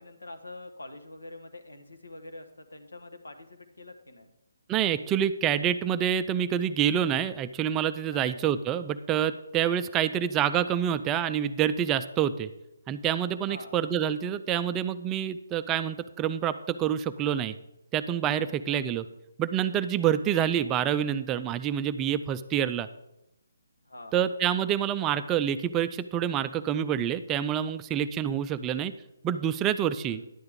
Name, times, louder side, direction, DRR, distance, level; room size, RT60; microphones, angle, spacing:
voice 1, 0.0-4.3 8.1-8.3 13.5-13.8 18.4-18.9 20.1-20.3 23.9-24.3 30.1-30.3, left 2 dB, 85° left, 6 dB, 1.2 m, -46 dB
voice 2, 4.7-12.5 12.9-17.6 17.9-19.0 19.4-22.9 24.1-28.9 29.2-30.2, right 9 dB, 15° right, 12 dB, 0.3 m, -27 dB
10.5 x 7.8 x 3.6 m, 0.88 s
figure-of-eight pair, 150°, 0 cm